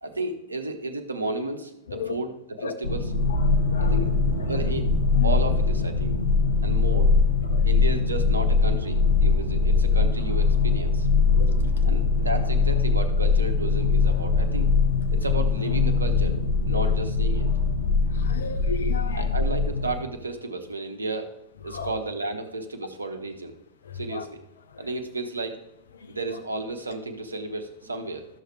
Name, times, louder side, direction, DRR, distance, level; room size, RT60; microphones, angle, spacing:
voice 1, 0.0-3.1 3.8-4.1 4.5-4.9 5.2-6.1 6.6-7.1 7.6-11.1 11.8-14.7 15.1-16.4 16.7-17.5 19.1-21.3 21.6-23.5 23.9-24.4 24.8-25.6 26.1-28.3, right 2 dB, 80° right, 7 dB, 0.9 m, -33 dB
sound 1, 2.8-20.0, left 4 dB, 80° left, 1.3 m, -22 dB
voice 2, 11.3-11.9 16.7-16.9 18.1-19.4 21.7-21.9 23.9-24.2 24.7-24.8, left 5 dB, 65° left, 9 dB, 0.8 m, -35 dB
13.0 x 6.4 x 3.3 m, 0.85 s
figure-of-eight pair, 90°, 0 cm